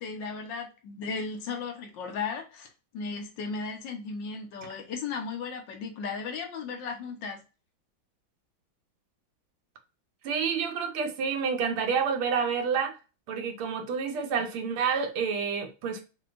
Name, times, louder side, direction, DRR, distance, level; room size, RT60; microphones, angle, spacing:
voice 1, 0.0-2.7 2.9-7.4, left 5 dB, 65° left, 1.5 m, -35 dB
voice 2, 10.2-13.0 13.3-16.0, right 6 dB, 90° right, 1.7 m, -29 dB
6.3 x 2.3 x 2.5 m
omnidirectional pair, 2.3 m